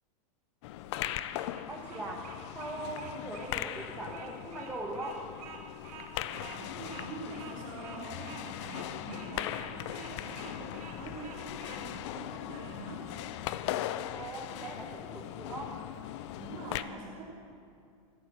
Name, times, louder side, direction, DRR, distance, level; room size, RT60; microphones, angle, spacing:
sound 1, 0.6-16.8, left 13 dB, 50° left, 0.5 m, -39 dB
Bird vocalization bird call bird song, 1.0-11.8, right 6 dB, 85° right, 2.1 m, -49 dB
voice 1, 1.7-2.2 2.5-5.2 14.1-15.8, right 2 dB, 10° right, -3 dB, 1.0 m, -40 dB
voice 2, 6.2-13.2 16.4-17.4, right 3 dB, 60° right, -7 dB, 2.7 m, -45 dB
13.5 x 8.4 x 6.0 m, 2.5 s
supercardioid pair, 155°, 19 cm